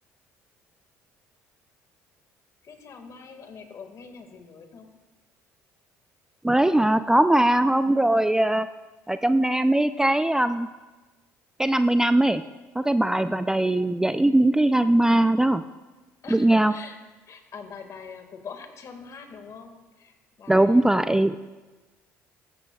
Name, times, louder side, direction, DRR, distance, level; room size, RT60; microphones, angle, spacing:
voice 1, 2.6-4.9 13.2-13.4 16.2-17.0 17.3-21.0, left 5 dB, 50° left, 6 dB, 1.9 m, -43 dB
voice 2, 6.4-8.7 9.1-10.7 11.6-12.4 12.8-15.6 16.3-16.7 20.5-21.4, right 1 dB, 10° right, 11 dB, 0.4 m, -20 dB
15.0 x 14.0 x 2.3 m, 1.2 s
hypercardioid pair, 65°, 7 cm